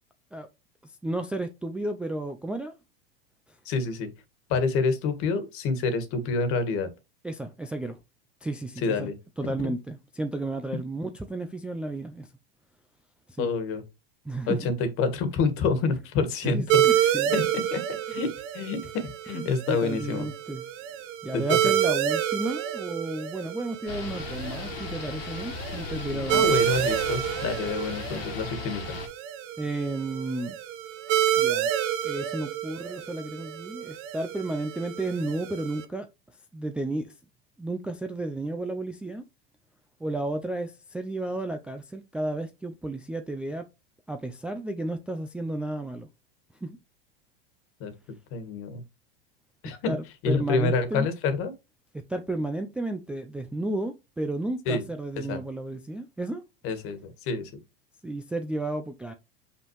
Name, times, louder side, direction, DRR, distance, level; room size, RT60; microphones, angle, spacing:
voice 1, 1.0-2.7 3.5-3.6 7.2-8.0 8.4-12.3 13.3-13.5 14.2-14.7 16.4-17.3 19.3-20.6 21.2-26.5 29.6-30.6 31.4-31.7 32.0-36.1 36.5-37.1 37.6-39.2 40.0-43.7 44.1-46.1 46.6-46.8 49.9-51.1 52.1-56.4 58.0-59.1, right 2 dB, 5° right, 0.4 m, -32 dB
voice 2, 3.6-4.1 4.5-6.9 8.8-9.1 9.4-9.7 13.4-13.8 14.5-17.8 18.1-20.3 21.3-21.4 26.3-28.9 47.8-47.9 48.3-48.8 49.6-49.9 50.2-51.5 54.6-54.8 55.2-55.4 56.6-57.5, left 4 dB, 45° left, 1.7 m, -28 dB
sound 1, 16.7-35.8, right 11 dB, 45° right, 0.9 m, -29 dB
sound 2, 23.9-29.1, left 5 dB, 80° left, 1.9 m, -37 dB
5.7 x 5.4 x 3.1 m
hypercardioid pair, 120°, 30 cm